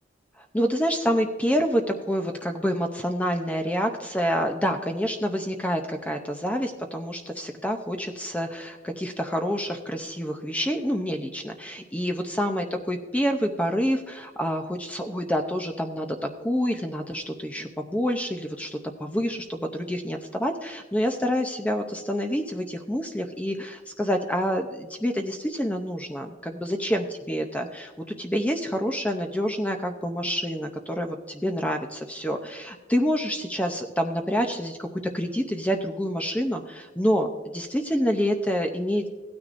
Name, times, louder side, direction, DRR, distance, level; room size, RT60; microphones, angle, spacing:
voice 1, 0.4-16.2 16.4-39.1, equal, 10° left, 4 dB, 0.6 m, -27 dB
16.0 x 9.5 x 2.5 m, 1.4 s
head